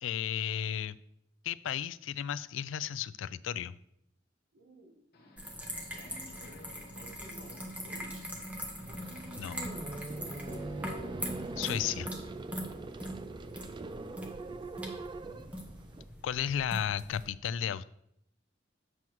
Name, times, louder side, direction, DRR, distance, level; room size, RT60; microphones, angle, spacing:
voice 1, 0.0-1.0 1.4-3.8 9.3-9.7 11.6-12.1 16.2-17.8, left 9 dB, 80° left, 17 dB, 0.3 m, -34 dB
voice 2, 4.5-5.1 6.2-8.1 10.0-10.8 12.7-13.0 14.2-15.0, right 2 dB, 70° right, 4 dB, 1.3 m, -59 dB
Subway metro underground, 5.1-11.7, left 1 dB, 55° left, 1.1 m, -54 dB
sound 1, 5.4-17.2, equal, 5° right, 1.2 m, -42 dB
sound 2, 8.9-16.0, right 2 dB, 25° right, 0.4 m, -42 dB
7.7 x 7.1 x 3.0 m, 0.74 s
head